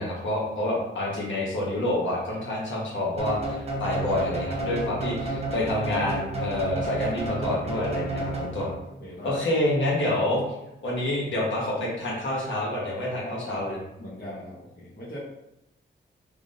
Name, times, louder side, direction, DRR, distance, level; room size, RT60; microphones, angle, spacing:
voice 1, 0.0-8.7 9.2-10.4 10.8-13.8, left 1 dB, 70° left, -4 dB, 1.3 m, -28 dB
sound 1, 3.2-8.9, right 1 dB, 30° right, 0.8 m, -31 dB
voice 2, 9.0-9.4 13.2-13.6 14.0-15.2, left 1 dB, 50° left, -9 dB, 1.3 m, -40 dB
3.5 x 3.4 x 2.6 m, 0.87 s
wide cardioid pair, 115°, 20 cm